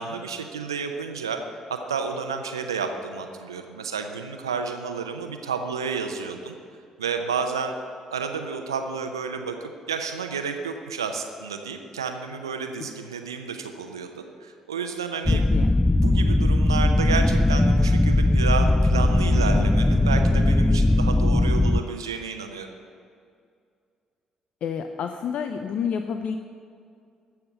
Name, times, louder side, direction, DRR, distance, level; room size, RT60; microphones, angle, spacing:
voice 1, 0.0-1.4 1.7-6.6 7.0-7.7 8.1-15.4 15.9-22.7, right 5 dB, 90° right, 6 dB, 0.6 m, -31 dB
sound 1, 15.2-21.8, left 1 dB, 10° left, 0.4 m, -19 dB
voice 2, 15.3-15.8 24.6-26.3, left 7 dB, 60° left, 7 dB, 0.6 m, -29 dB
14.0 x 5.9 x 7.9 m, 2.3 s
hypercardioid pair, 45°, 2 cm